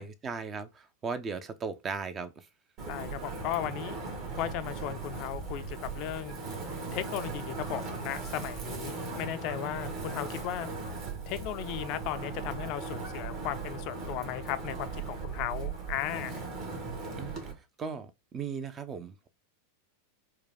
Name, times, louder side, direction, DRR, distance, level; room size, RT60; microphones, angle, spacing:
voice 1, 0.0-2.5 17.1-19.3, right 5 dB, 30° right, 0.7 m, -37 dB
Wind, 2.8-17.5, right 4 dB, 45° right, 1.7 m, -38 dB
voice 2, 2.9-4.0 4.4-6.4 6.9-10.7 11.3-16.4, left 12 dB, 50° left, 0.4 m, -36 dB
4.6 x 2.3 x 3.4 m
hypercardioid pair, 95°, 0 cm